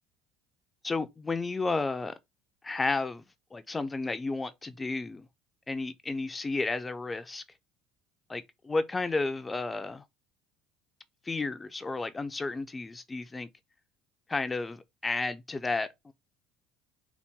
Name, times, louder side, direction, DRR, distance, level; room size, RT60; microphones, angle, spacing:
voice 1, 0.8-2.1 2.6-3.2 3.5-5.2 5.7-7.4 8.3-10.0 11.3-13.5 14.3-16.1, left 3 dB, 20° left, 0.5 m, -32 dB
4.0 x 2.1 x 3.6 m
supercardioid pair, 85°, 0 cm